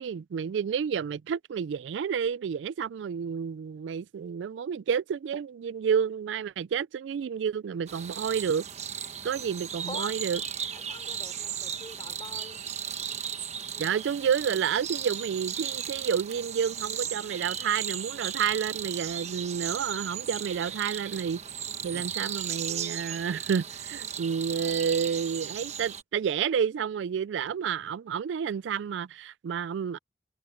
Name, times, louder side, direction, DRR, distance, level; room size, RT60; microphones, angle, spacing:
voice 1, 0.0-8.7 9.2-10.4 13.8-21.4 21.8-30.0, right 7 dB, 85° right, 0.3 m, -30 dB
sound 1, 7.9-26.0, right 8 dB, 40° right, 1.1 m, -36 dB
voice 2, 9.8-10.2 10.6-12.7 13.7-13.9, left 3 dB, 25° left, 5.3 m, -45 dB
head